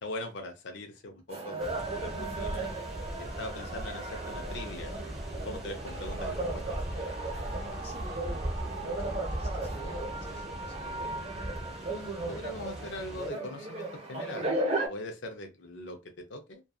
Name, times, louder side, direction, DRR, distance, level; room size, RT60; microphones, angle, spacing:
voice 1, 0.0-2.7 3.2-4.9 5.4-6.6 11.8-14.5 14.9-16.6, left 1 dB, 75° left, 0.5 m, -41 dB
sound 1, 1.3-14.9, right 2 dB, 35° right, 0.8 m, -36 dB
sound 2, 1.6-13.3, right 1 dB, ahead, 0.8 m, -39 dB
voice 2, 7.2-11.1, left 2 dB, 35° left, 1.2 m, -50 dB
2.6 x 2.3 x 2.3 m
head